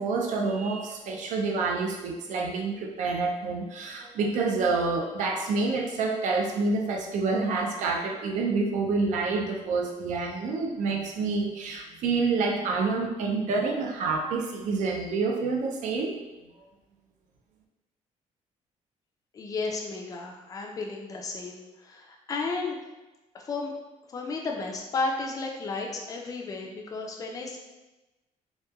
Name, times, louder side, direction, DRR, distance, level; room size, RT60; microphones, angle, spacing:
voice 1, 0.0-16.1, right 4 dB, 70° right, 1 dB, 0.4 m, -28 dB
voice 2, 19.3-22.8 23.3-23.7 24.1-27.6, left 3 dB, 25° left, 1 dB, 0.3 m, -33 dB
2.9 x 2.1 x 2.3 m, 1.1 s
cardioid pair, 135°, 13 cm